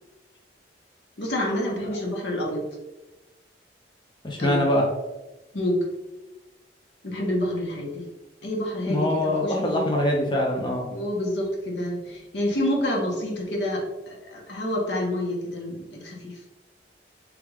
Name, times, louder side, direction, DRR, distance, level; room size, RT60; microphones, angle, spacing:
voice 1, 1.2-2.6 4.4-4.6 5.5-5.8 7.0-8.1 8.4-9.8 10.9-16.4, left 1 dB, 85° left, -2 dB, 1.1 m, -28 dB
voice 2, 4.2-4.8 8.9-10.9, left 1 dB, 25° left, 0 dB, 0.5 m, -23 dB
3.5 x 3.4 x 3.3 m, 1.0 s
head